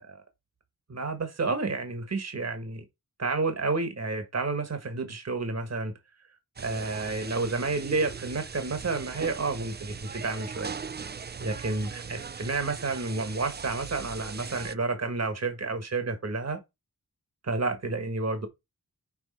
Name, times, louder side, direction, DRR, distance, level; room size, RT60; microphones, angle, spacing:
voice 1, 0.9-2.8 3.2-5.9 6.6-10.7 11.4-16.6 17.4-18.5, right 3 dB, 45° right, 1.4 m, -30 dB
sound 1, 6.6-14.7, right 6 dB, 30° right, 0.4 m, -39 dB
6.2 x 4.1 x 4.2 m
wide cardioid pair, 90°, 35 cm